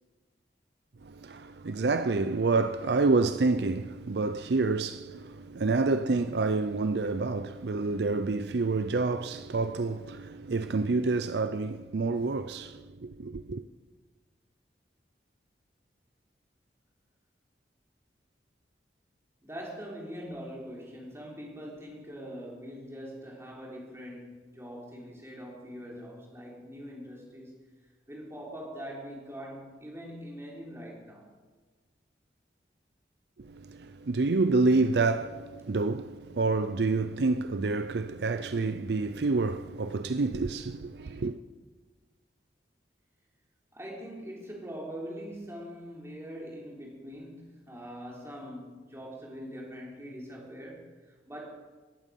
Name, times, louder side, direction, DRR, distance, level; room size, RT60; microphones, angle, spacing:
voice 1, 1.0-13.6 33.4-41.3, right 3 dB, 65° right, 0.5 m, -28 dB
voice 2, 19.4-27.6 28.1-31.3 43.7-51.5, equal, 15° right, 3.5 m, -43 dB
19.0 x 9.0 x 7.5 m
head